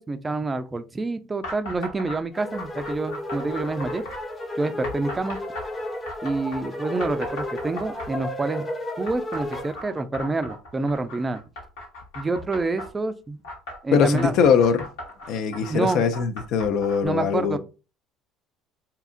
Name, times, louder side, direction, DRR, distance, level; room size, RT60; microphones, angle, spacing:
voice 1, 0.0-4.0 4.5-5.4 6.2-8.7 9.0-11.4 12.1-13.4 13.8-14.4 15.7-16.0 17.0-17.6, right 3 dB, 25° right, 0.3 m, -27 dB
sound 1, 1.4-2.2 2.5-4.2 4.8-6.6 7.0-8.3 9.1-12.9 13.4-17.1, left 1 dB, 85° left, 1.0 m, -37 dB
sound 2, 2.3-9.7, left 1 dB, 25° left, 0.9 m, -33 dB
voice 2, 13.9-14.9 15.3-17.6, left 6 dB, 65° left, 0.4 m, -21 dB
2.8 x 2.3 x 2.4 m
hypercardioid pair, 75°, 0 cm